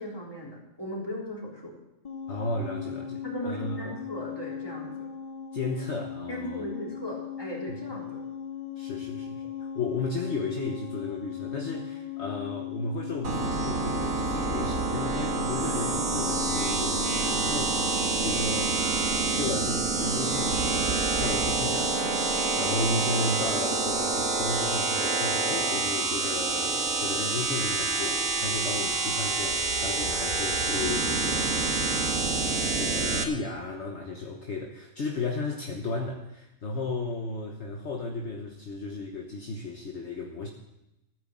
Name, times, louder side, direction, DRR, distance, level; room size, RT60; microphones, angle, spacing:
voice 1, 0.0-1.8 3.2-5.1 6.3-8.2, equal, 15° left, -3 dB, 3.6 m, -37 dB
sound 1, 2.0-17.4, left 8 dB, 35° left, 0.7 m, -38 dB
voice 2, 2.3-4.0 5.5-6.6 8.8-18.0 18.2-18.7 19.4-32.2 32.6-40.5, left 3 dB, 50° left, 2 dB, 1.5 m, -34 dB
sound 2, 13.2-33.2, right 3 dB, 70° right, 1.9 m, -27 dB
14.0 x 9.3 x 7.4 m, 0.92 s
omnidirectional pair, 1.5 m